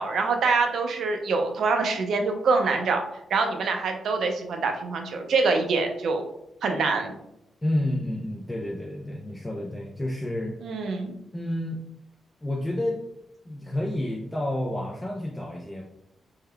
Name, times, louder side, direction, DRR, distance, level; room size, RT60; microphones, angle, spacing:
voice 1, 0.0-3.0 3.3-6.2 6.6-7.1 10.6-11.1, right 4 dB, 70° right, 4 dB, 0.5 m, -25 dB
voice 2, 7.6-10.6 11.3-11.8 12.4-13.0 13.4-15.8, left 1 dB, 15° left, -1 dB, 0.4 m, -30 dB
3.5 x 2.2 x 3.3 m, 0.80 s
wide cardioid pair, 135°, 0 cm